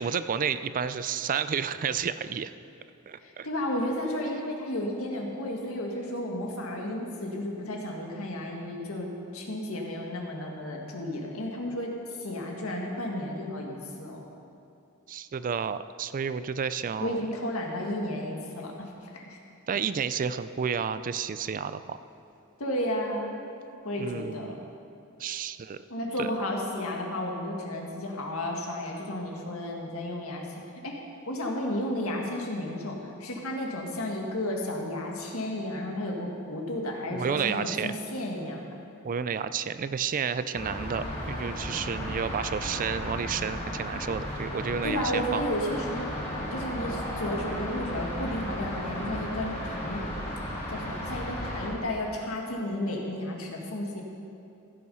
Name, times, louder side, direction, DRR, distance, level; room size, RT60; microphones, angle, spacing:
voice 1, 0.0-2.5 3.1-3.5 15.1-17.2 19.7-22.0 24.0-24.6 25.2-25.8 26.2-26.3 37.1-37.9 39.0-45.4, right 6 dB, 40° right, 13 dB, 0.4 m, -31 dB
voice 2, 3.2-11.9 12.2-14.3 17.0-19.4 22.6-23.4 23.8-24.6 25.9-38.7 44.8-46.1 46.5-50.1 50.7-54.0, left 1 dB, 75° left, 0 dB, 1.9 m, -33 dB
sound 1, 40.5-51.7, equal, 35° left, 3.3 m, -34 dB
15.5 x 8.4 x 5.5 m, 2.6 s
head